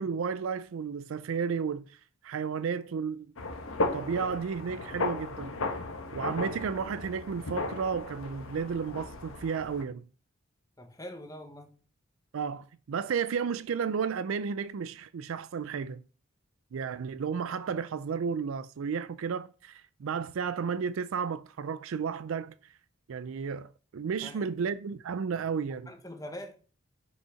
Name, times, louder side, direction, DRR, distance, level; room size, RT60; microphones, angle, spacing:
voice 1, 0.0-3.3 3.9-5.6 6.1-10.1 12.3-16.0 16.7-22.5 23.1-25.9, right 6 dB, 75° right, 0.4 m, -33 dB
sound 1, 3.4-9.8, left 2 dB, 80° left, 1.3 m, -35 dB
voice 2, 10.8-11.7 24.2-24.4 25.4-25.5 25.9-26.5, left 1 dB, 15° left, 1.2 m, -43 dB
6.4 x 5.4 x 5.7 m
head